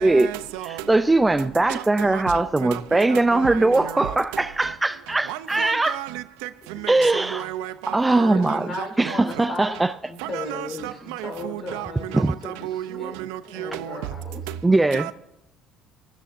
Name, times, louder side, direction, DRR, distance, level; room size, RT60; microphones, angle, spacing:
voice 1, 0.9-6.0 6.9-7.5 7.9-8.7 9.0-9.9 12.1-12.3 14.6-15.1, right 2 dB, 15° right, 0.5 m, -20 dB
voice 2, 5.3-6.1 7.3-7.9 8.2-8.4 10.3-10.7 11.7-11.9 12.6-13.4 13.8-13.9 14.9-15.1, right 13 dB, 85° right, 0.6 m, -32 dB
voice 3, 8.3-13.2 13.4-14.4, left 2 dB, 45° left, 4.2 m, -36 dB
16.5 x 14.0 x 2.6 m
supercardioid pair, 80°, 0 cm